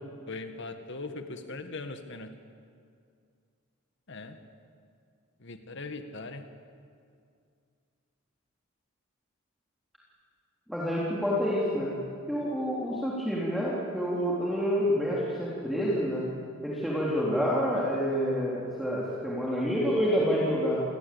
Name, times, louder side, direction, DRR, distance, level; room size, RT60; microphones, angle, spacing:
voice 1, 0.3-2.4 4.1-4.4 5.4-6.5, left 3 dB, 60° left, 7 dB, 1.8 m, -40 dB
voice 2, 10.7-11.9 12.3-16.3 16.6-20.8, equal, ahead, -7 dB, 3.8 m, -28 dB
28.5 x 20.5 x 8.7 m, 2.3 s
head